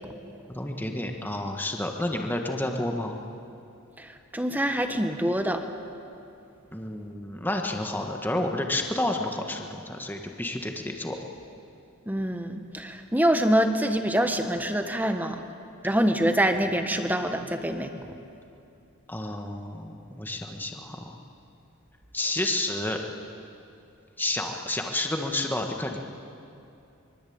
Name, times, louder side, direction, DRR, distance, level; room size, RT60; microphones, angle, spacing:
voice 1, 0.5-3.2 6.7-11.2 19.1-21.2 22.1-23.0 24.2-26.0, left 1 dB, 10° left, 3 dB, 1.6 m, -30 dB
voice 2, 4.0-5.6 12.1-15.4 15.8-18.1, right 1 dB, 10° right, 6 dB, 1.4 m, -25 dB
25.0 x 23.0 x 8.8 m, 2.6 s
head